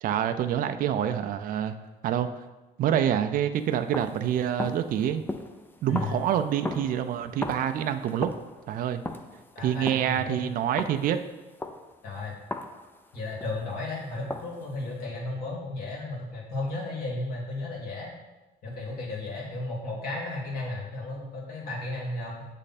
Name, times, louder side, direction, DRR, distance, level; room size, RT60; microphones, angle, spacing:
voice 1, 0.0-1.7 2.0-2.3 2.8-5.2 5.8-8.3 8.7-9.0 9.6-11.2, right 10 dB, 55° right, 8 dB, 0.4 m, -26 dB
sound 1, 3.5-13.8 14.3-15.0, left 2 dB, 10° left, 0.4 m, -39 dB
voice 2, 5.9-6.2 9.6-10.5 12.0-12.3 13.1-18.1 18.6-22.5, left 2 dB, 60° left, -3 dB, 2.0 m, -34 dB
7.3 x 3.3 x 4.1 m, 1.1 s
cardioid pair, 110°, 17 cm